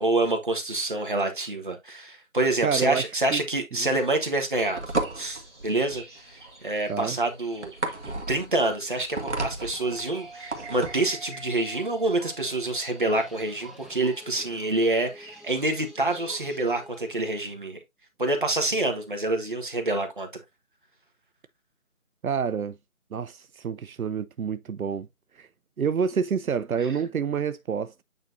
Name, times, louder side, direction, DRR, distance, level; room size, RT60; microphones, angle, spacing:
voice 1, 0.0-7.7 8.3-17.8 18.2-20.3, right 2 dB, 35° right, 1.4 m, -27 dB
voice 2, 2.6-3.0 3.3-3.4 3.8-3.9 6.9-7.2 22.2-22.8 23.1-25.1 25.4-25.5 25.8-28.0, right 6 dB, 85° right, 0.6 m, -28 dB
sound 1, 3.8-16.8, right 3 dB, 20° right, 2.1 m, -50 dB
sound 2, 4.6-11.1, right 2 dB, 55° right, 1.6 m, -33 dB
sound 3, 9.8-17.3, right 2 dB, ahead, 0.5 m, -48 dB
8.8 x 4.2 x 2.6 m
figure-of-eight pair, 175°, 41 cm